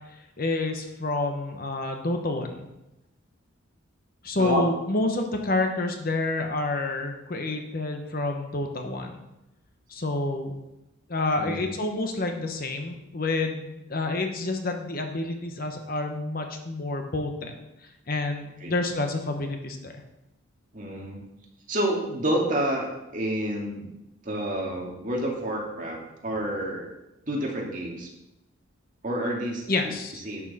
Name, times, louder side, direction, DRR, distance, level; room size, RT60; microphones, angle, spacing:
voice 1, 0.4-2.7 4.2-9.2 9.9-10.5 11.1-19.9 29.7-30.2, left 2 dB, 45° left, 4 dB, 1.0 m, -29 dB
voice 2, 11.4-11.7 18.6-18.7 20.7-21.2 21.7-23.9 24.2-26.0 26.2-26.8 27.3-28.1 29.0-29.9 30.2-30.4, right 1 dB, 40° right, -2 dB, 2.0 m, -29 dB
11.5 x 7.3 x 4.2 m, 0.93 s
head